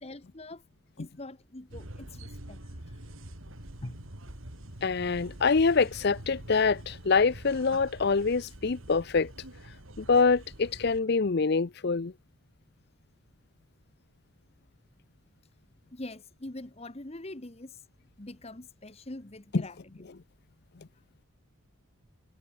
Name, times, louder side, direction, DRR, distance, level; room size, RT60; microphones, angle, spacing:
voice 1, 0.0-0.6 1.0-2.6 3.8-4.0 15.9-17.8 18.2-19.8, left 2 dB, 30° left, 1.1 m, -43 dB
sound 1, 1.7-11.0, right 1 dB, 70° right, 3.3 m, -46 dB
voice 2, 4.8-9.3 10.0-12.1 19.5-19.6, left 4 dB, 50° left, 0.6 m, -25 dB
head